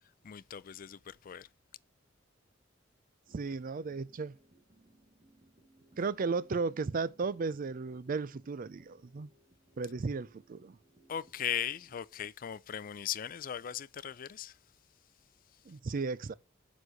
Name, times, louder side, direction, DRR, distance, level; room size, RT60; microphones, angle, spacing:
voice 1, 0.2-1.5 11.1-14.6, left 9 dB, 45° left, 0.4 m, -38 dB
sound 1, 3.3-12.0, right 2 dB, 25° right, 1.3 m, -64 dB
voice 2, 3.3-4.3 6.0-9.3 9.8-10.8 15.7-16.3, right 4 dB, 45° right, 0.4 m, -35 dB
9.3 x 4.2 x 6.4 m
head